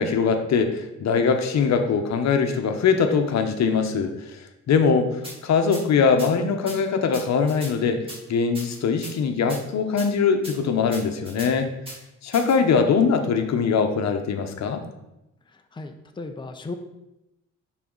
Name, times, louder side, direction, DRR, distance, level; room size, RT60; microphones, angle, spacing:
voice 1, 0.0-4.4 4.7-8.0 8.3-11.7 12.2-14.8, left 5 dB, 65° left, 6 dB, 1.0 m, -22 dB
sound 1, 5.2-5.4 5.7-5.8 6.2-6.3 6.7-6.8 7.1-7.7 8.1-8.2 8.5-9.1 9.5-9.6 10.0-10.1 10.4-10.5 10.9-11.5 11.9-12.0 12.3-12.6, equal, 20° right, 2.9 m, -38 dB
voice 2, 15.8-16.7, left 3 dB, 15° left, 5 dB, 0.7 m, -35 dB
10.5 x 4.2 x 3.9 m, 0.91 s
cardioid pair, 90°, 30 cm